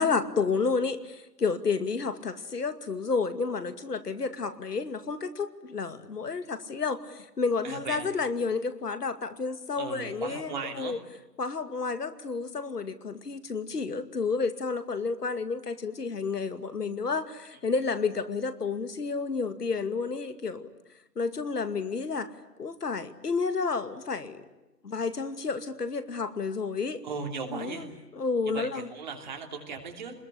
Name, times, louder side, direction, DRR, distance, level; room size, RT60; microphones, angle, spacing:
voice 1, 0.0-11.0 11.4-20.7 21.2-22.3 22.6-24.4 24.8-27.0 27.5-28.9, left 4 dB, 70° left, 10 dB, 2.4 m, -31 dB
voice 2, 7.6-8.1 9.7-10.9 27.0-27.9 28.5-30.1, right 5 dB, 25° right, 3 dB, 3.1 m, -37 dB
26.5 x 21.5 x 9.9 m, 1.0 s
hypercardioid pair, 165°, 49 cm